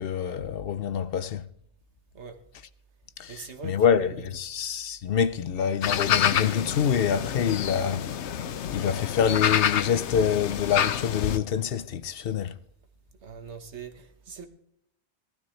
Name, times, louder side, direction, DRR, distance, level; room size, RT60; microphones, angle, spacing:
voice 1, 0.0-1.5 3.2-8.1 8.7-12.5, left 8 dB, 65° left, 0.8 m, -26 dB
voice 2, 3.3-4.3 13.2-14.5, right 6 dB, 90° right, 1.6 m, -42 dB
sound 1, 5.8-11.4, left 9 dB, 85° left, 1.0 m, -28 dB
18.0 x 12.5 x 3.2 m
omnidirectional pair, 1.1 m